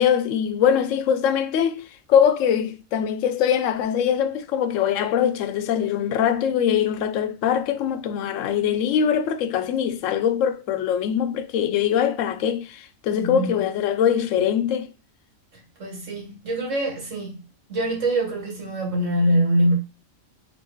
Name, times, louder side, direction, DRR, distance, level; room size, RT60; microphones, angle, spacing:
voice 1, 0.0-1.8 2.1-14.9, left 8 dB, 75° left, 0.9 m, -22 dB
voice 2, 13.1-13.6 15.8-17.4 17.7-19.7, right 1 dB, 65° right, 2.1 m, -24 dB
4.3 x 3.7 x 3.0 m
omnidirectional pair, 1.4 m